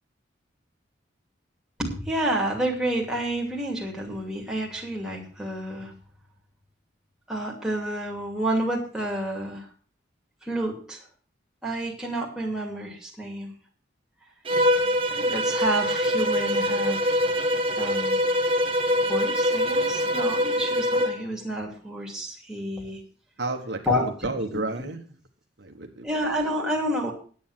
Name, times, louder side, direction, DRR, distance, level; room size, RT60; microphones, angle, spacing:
voice 1, 1.8-5.9 7.3-9.7 10.4-11.0 11.6-13.5 15.1-17.3 17.8-18.2 19.1-23.0 23.9-24.1 24.5-24.6 26.0-27.1, right 1 dB, 5° right, -2 dB, 2.6 m, -29 dB
Bowed string instrument, 14.5-21.2, equal, 30° right, 1.4 m, -24 dB
voice 2, 23.4-25.0 25.6-26.1, right 2 dB, 65° right, 4 dB, 1.3 m, -31 dB
9.7 x 8.7 x 6.0 m, 0.42 s
head